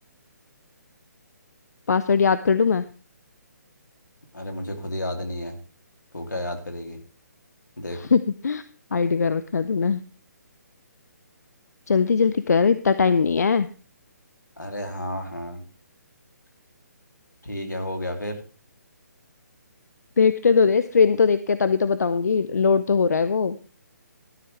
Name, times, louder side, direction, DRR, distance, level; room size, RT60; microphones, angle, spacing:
voice 1, 1.9-2.8 8.0-8.6 8.9-10.0 11.9-13.7 20.2-23.6, left 5 dB, 65° left, 13 dB, 0.7 m, -20 dB
voice 2, 4.3-5.6 6.1-7.0 7.8-8.0 14.6-15.6 17.4-18.4, left 1 dB, 85° left, 4 dB, 2.9 m, -31 dB
13.0 x 11.0 x 3.3 m, 0.37 s
figure-of-eight pair, 140°, 10 cm